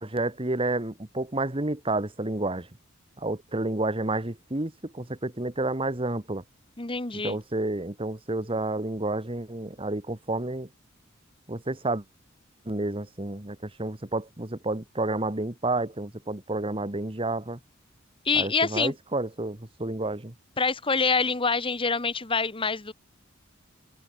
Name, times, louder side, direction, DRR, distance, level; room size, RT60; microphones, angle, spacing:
voice 1, 0.0-2.7 3.2-6.4 7.2-10.7 11.5-12.0 12.6-17.6 18.3-20.3, right 2 dB, 25° right, 1.5 m, -30 dB
voice 2, 6.8-7.4 18.3-18.9 20.6-22.9, left 4 dB, 25° left, 1.6 m, -26 dB
head